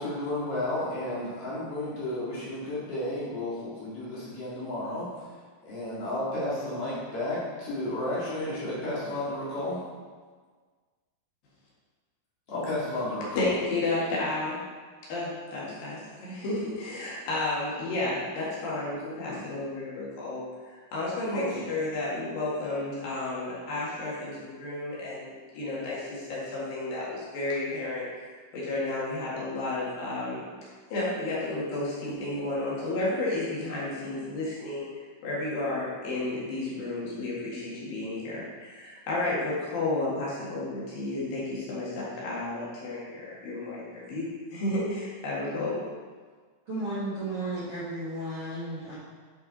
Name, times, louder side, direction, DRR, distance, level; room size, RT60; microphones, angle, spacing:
voice 1, 0.0-5.3 5.6-9.8 12.5-13.5 19.3-19.4 21.3-21.5, left 1 dB, 45° left, -8 dB, 2.6 m, -32 dB
voice 2, 13.4-14.6 15.1-28.0 28.5-30.4 30.9-34.9 35.2-45.8, left 2 dB, 65° left, -7 dB, 3.6 m, -32 dB
voice 3, 46.7-49.0, right 1 dB, 50° right, -10 dB, 1.9 m, -33 dB
9.5 x 5.8 x 4.1 m, 1.5 s
omnidirectional pair, 4.5 m